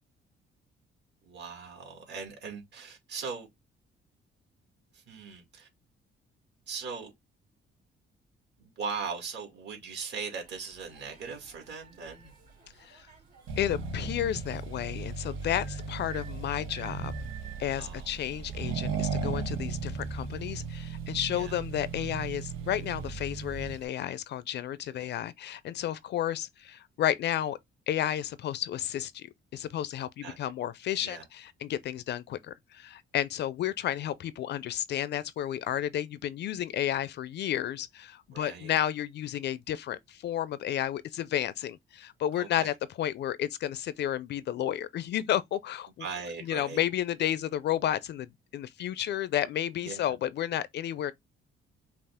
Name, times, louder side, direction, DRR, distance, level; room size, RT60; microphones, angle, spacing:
voice 1, 1.2-3.5 4.9-5.7 6.7-7.1 8.6-12.3 17.8-18.1 21.3-21.6 24.9-25.1 30.2-30.4 31.0-31.2 38.3-38.8 42.4-42.7 46.0-46.8 49.8-50.0, right 5 dB, 55° right, 2.1 m, -39 dB
sound 1, 10.4-17.6, right 6 dB, 40° right, 2.9 m, -54 dB
Accelerating revving vroom, 13.5-23.9, right 5 dB, 80° right, 1.2 m, -36 dB
voice 2, 13.6-17.1 17.6-27.6 27.9-29.3 29.5-46.0 46.5-51.1, left 11 dB, 55° left, 0.4 m, -32 dB
5.4 x 2.4 x 3.5 m
cardioid pair, 145°, 21 cm